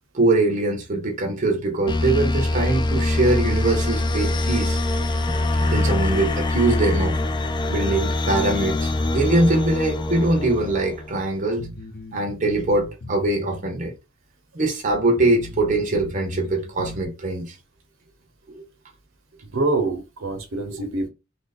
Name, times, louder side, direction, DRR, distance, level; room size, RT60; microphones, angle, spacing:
voice 1, 0.1-4.8 5.6-11.7 12.1-13.9 14.5-17.6 18.5-18.6, right 2 dB, 40° right, 0.7 m, -22 dB
sound 1, 1.9-11.3, left 2 dB, 20° left, 0.3 m, -24 dB
sound 2, 11.6-13.7 13.9-14.0 14.6-14.7 15.2-17.1, left 1 dB, 55° left, 0.9 m, -37 dB
voice 2, 19.4-21.1, right 2 dB, 75° right, 0.9 m, -25 dB
2.8 x 2.6 x 4.0 m
head